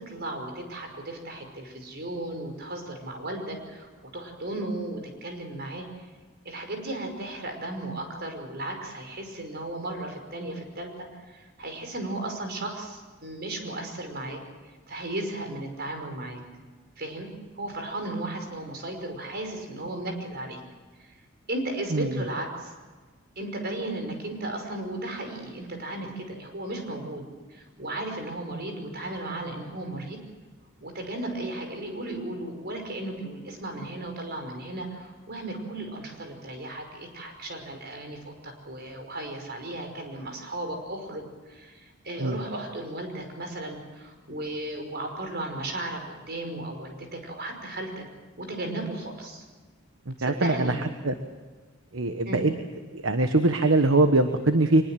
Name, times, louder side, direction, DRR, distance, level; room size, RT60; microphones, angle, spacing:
voice 1, 0.0-6.1 6.4-14.4 14.9-16.4 17.0-17.3 17.5-20.6 21.0-21.2 21.5-22.7 23.4-27.2 27.5-30.2 30.8-48.0 48.4-49.4 50.2-50.8 52.2-52.4, right 1 dB, 50° right, 4 dB, 5.5 m, -35 dB
voice 2, 21.9-22.2 42.2-42.4 50.1-50.8 51.0-51.1 51.9-52.5 52.9-54.8, right 2 dB, 70° right, 8 dB, 1.3 m, -22 dB
23.5 x 21.5 x 7.6 m, 1.4 s
head